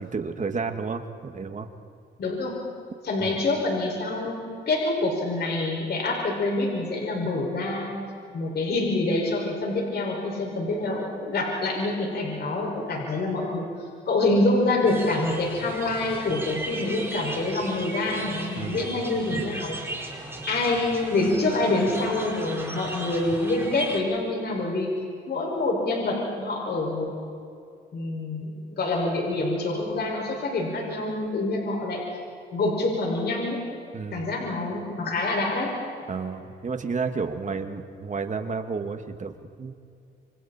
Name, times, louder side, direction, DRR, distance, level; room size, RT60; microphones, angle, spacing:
voice 1, 0.0-1.7 3.2-3.4 18.6-19.0 33.9-34.4 36.1-39.8, right 4 dB, 40° right, 6 dB, 2.1 m, -31 dB
voice 2, 2.2-2.6 3.0-7.9 8.3-13.7 14.1-19.7 20.5-24.9 25.3-27.1 27.9-32.0 32.5-33.6 34.1-35.7, left 2 dB, 55° left, -1 dB, 6.0 m, -26 dB
sound 1, 14.9-24.0, right 2 dB, 10° right, 4.9 m, -36 dB
28.5 x 25.5 x 4.4 m, 2.4 s
cardioid pair, 90°, 20 cm